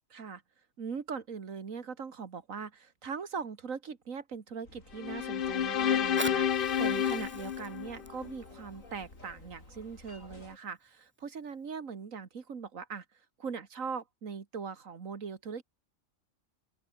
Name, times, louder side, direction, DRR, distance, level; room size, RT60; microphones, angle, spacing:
voice 1, 0.1-0.4 0.8-15.6, right 5 dB, 80° right, 2.1 m, -41 dB
sound 1, 4.6-10.6, left 2 dB, 75° left, 6.7 m, -53 dB
sound 2, 5.0-8.4, left 9 dB, 50° left, 0.8 m, -30 dB
Fire, 5.9-10.9 11.5-11.6, right 1 dB, 10° right, 1.7 m, -45 dB
open air
omnidirectional pair, 1.4 m